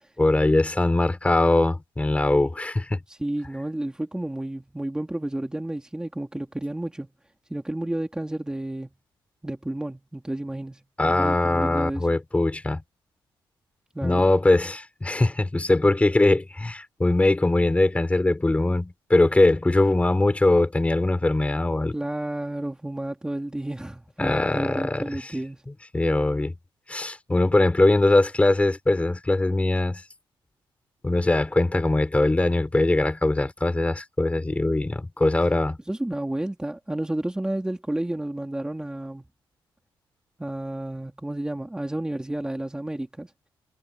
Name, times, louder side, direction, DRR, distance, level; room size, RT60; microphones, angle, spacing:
voice 1, 0.2-3.0 11.0-12.8 14.0-21.9 24.2-25.3 25.9-26.5 26.9-30.0 31.0-35.8, left 2 dB, 15° left, 3.9 m, -21 dB
voice 2, 3.1-7.1 7.5-8.9 9.4-12.1 13.9-14.2 21.9-25.6 35.9-39.3 40.4-43.3, right 1 dB, 10° right, 3.2 m, -31 dB
cardioid pair, 115°, 9 cm